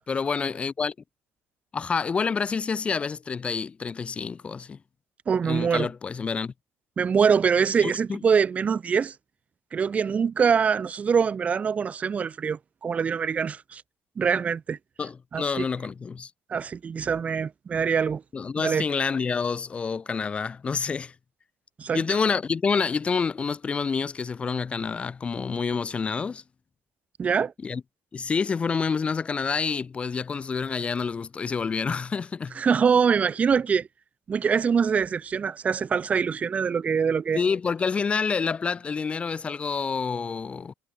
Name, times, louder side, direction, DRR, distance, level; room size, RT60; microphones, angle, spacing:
voice 1, 0.1-0.9 1.7-4.8 5.4-6.5 7.8-8.2 15.0-16.3 18.3-21.1 21.9-26.4 27.6-27.8 28.1-32.6 37.3-40.7, left 5 dB, 20° left, 0.6 m, -28 dB
voice 2, 5.3-5.9 7.0-9.1 9.7-13.8 14.2-14.8 15.3-15.6 16.5-18.2 18.6-18.8 21.8-22.0 27.2-27.5 32.6-33.9 34.3-37.4, right 6 dB, 25° right, 0.9 m, -24 dB
cardioid pair, 150°, 5 cm